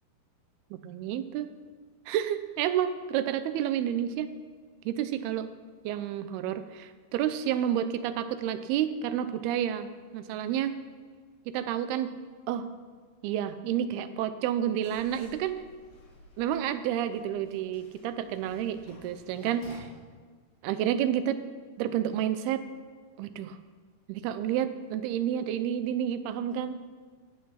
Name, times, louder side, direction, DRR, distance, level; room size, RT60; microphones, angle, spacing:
voice 1, 0.7-1.5 2.1-4.3 4.9-5.5 5.8-10.8 11.5-12.1 12.5-12.7 13.2-15.6 16.4-19.9 20.6-21.4 21.8-22.7 23.2-23.6 24.1-26.8, right 10 dB, 90° right, 11 dB, 2.7 m, -30 dB
Writing, 14.8-19.8, equal, 80° left, 5.3 m, -54 dB
16.0 x 9.3 x 5.8 m, 1.5 s
omnidirectional pair, 4.5 m